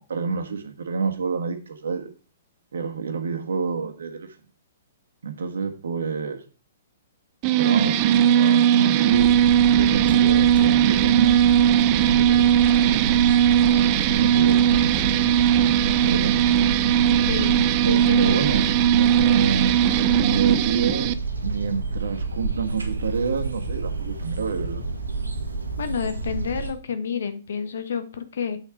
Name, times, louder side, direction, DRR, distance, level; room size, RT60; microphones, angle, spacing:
voice 1, 0.0-2.1 2.7-4.3 5.2-6.4 7.6-9.3 9.7-12.5 12.7-13.0 14.1-14.6 16.0-16.4 17.8-18.7 19.0-19.8 20.1-21.1 21.4-24.9, right 5 dB, 70° right, 5 dB, 1.5 m, -28 dB
sound 1, 7.4-21.1, right 10 dB, 35° right, 0.5 m, -19 dB
sound 2, 9.1-26.7, right 3 dB, 85° right, 1.5 m, -30 dB
voice 2, 17.2-17.6 17.9-18.4 25.8-28.6, left 7 dB, 65° left, 10 dB, 1.2 m, -29 dB
8.0 x 5.9 x 4.7 m, 0.33 s
figure-of-eight pair, 120°, 0 cm